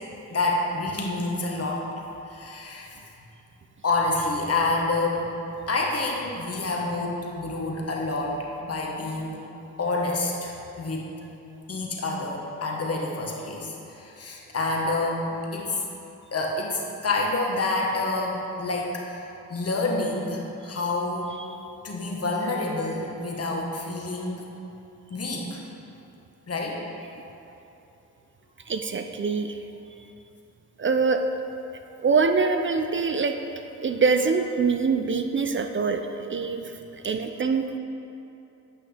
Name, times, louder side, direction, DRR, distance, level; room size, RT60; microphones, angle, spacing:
voice 1, 0.3-1.8 2.3-2.9 3.8-5.3 5.7-9.4 9.8-11.1 11.7-15.8 16.3-19.2 19.5-21.4 21.8-24.4 25.1-25.6 26.5-26.8 28.6-28.7 36.5-36.6, left 2 dB, 40° left, -2 dB, 1.4 m, -28 dB
voice 2, 28.7-29.6 30.8-31.2 32.0-33.4 33.8-36.6 37.0-37.7, right 4 dB, 35° right, 6 dB, 0.5 m, -24 dB
8.8 x 5.6 x 3.4 m, 2.9 s
supercardioid pair, 50°, 38 cm